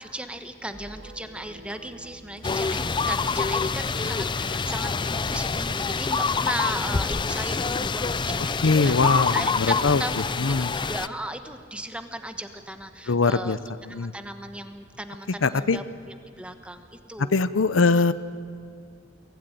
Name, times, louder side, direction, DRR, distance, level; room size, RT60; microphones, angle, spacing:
voice 1, 0.0-10.2 10.7-13.6 13.9-15.8 16.4-17.4, right 1 dB, 5° right, 8 dB, 1.1 m, -36 dB
sound 1, 0.7-8.3, right 2 dB, 70° right, 1.1 m, -45 dB
sound 2, 2.4-11.1, left 4 dB, 25° left, 0.5 m, -26 dB
voice 2, 8.6-10.0 10.4-10.7 13.1-13.6 13.8-14.1 15.4-15.8 17.3-18.1, left 4 dB, 75° left, 14 dB, 0.7 m, -22 dB
23.0 x 16.5 x 9.2 m, 2.3 s
head